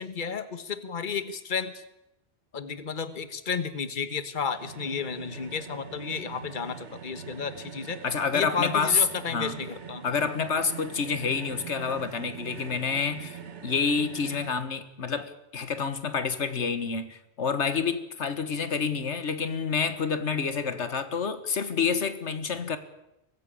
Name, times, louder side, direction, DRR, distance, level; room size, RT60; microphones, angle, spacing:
voice 1, 0.0-1.8 2.5-8.0 8.3-10.0, left 6 dB, 45° left, 11 dB, 1.4 m, -32 dB
sound 1, 4.6-14.5, right 7 dB, 90° right, 1.6 m, -43 dB
voice 2, 8.0-9.0 9.3-9.6 10.0-22.8, left 5 dB, 85° left, 11 dB, 1.8 m, -28 dB
23.5 x 14.5 x 8.7 m, 0.88 s
omnidirectional pair, 1.1 m